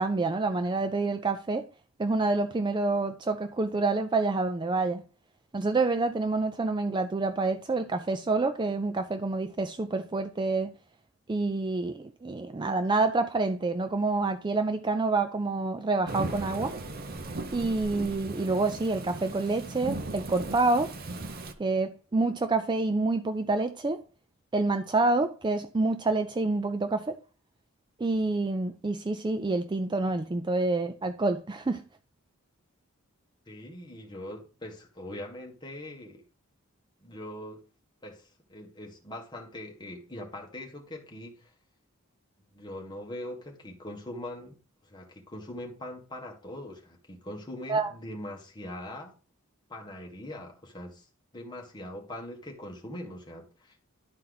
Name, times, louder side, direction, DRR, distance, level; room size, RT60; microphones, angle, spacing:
voice 1, 0.0-1.7 2.0-5.0 5.5-10.7 11.3-16.7 17.5-20.9 21.6-24.0 24.5-27.2 28.0-31.8 47.7-47.9, right 3 dB, 20° right, 0.3 m, -27 dB
Thunderstorm / Rain, 16.1-21.5, right 2 dB, 45° right, 0.7 m, -37 dB
voice 2, 33.5-36.2 37.0-37.6 38.0-41.5 42.5-44.6 44.8-49.1 49.7-51.0 51.3-53.8, left 1 dB, 20° left, 1.5 m, -42 dB
11.5 x 4.3 x 3.9 m
head